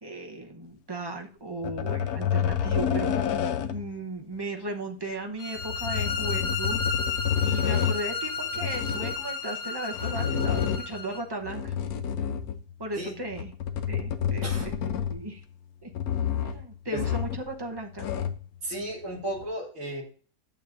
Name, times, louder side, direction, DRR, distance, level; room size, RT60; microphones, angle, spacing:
voice 1, 0.0-3.1 3.7-6.8 7.4-11.8 12.8-13.5 13.9-14.7 15.1-15.4 15.8-15.9 16.4-18.1, right 2 dB, 25° right, 2 dB, 0.5 m, -36 dB
sound 1, 1.6-3.9 5.6-8.0 8.5-9.2 9.9-11.0 11.4-12.7 13.3-15.4 15.9-16.6 17.0-17.5 17.8-18.5 19.4-19.5, left 8 dB, 70° left, 1.1 m, -29 dB
sound 2, 5.4-11.2, left 5 dB, 85° left, 1.7 m, -33 dB
voice 2, 18.6-20.0, right 1 dB, 50° right, -1 dB, 2.8 m, -34 dB
11.0 x 7.2 x 2.5 m, 0.42 s
omnidirectional pair, 1.8 m